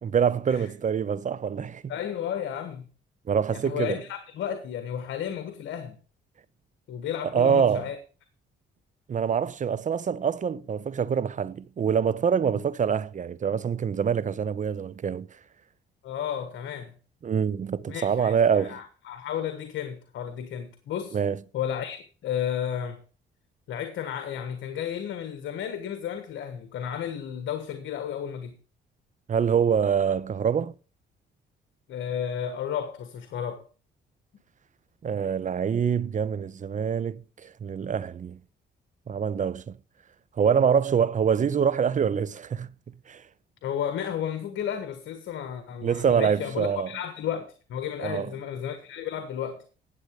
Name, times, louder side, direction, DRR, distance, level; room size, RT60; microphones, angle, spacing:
voice 1, 0.0-1.9 3.3-4.0 7.3-7.9 9.1-15.3 17.2-18.8 21.1-21.4 29.3-30.7 35.0-38.4 39.1-39.8 40.4-42.7 43.1-43.2 45.8-46.9 48.0-48.3, right 7 dB, 40° right, 0.7 m, -25 dB
voice 2, 1.9-2.9 3.5-6.0 6.9-8.0 16.0-16.9 17.9-21.2 21.5-23.0 23.7-28.5 31.9-33.6 43.6-49.6, left 9 dB, 75° left, 1.5 m, -33 dB
10.5 x 8.0 x 5.1 m
cardioid pair, 90°, 20 cm